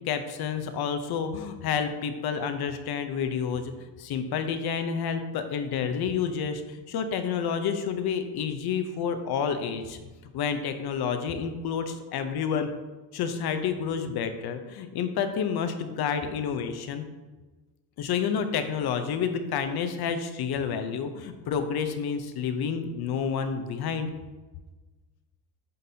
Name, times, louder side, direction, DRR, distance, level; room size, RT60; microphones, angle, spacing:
voice 1, 0.1-3.7 4.0-10.0 10.3-12.7 13.1-17.0 18.0-24.1, left 7 dB, 55° left, 8 dB, 0.7 m, -29 dB
9.3 x 4.0 x 2.7 m, 1.2 s
cardioid pair, 105°, 46 cm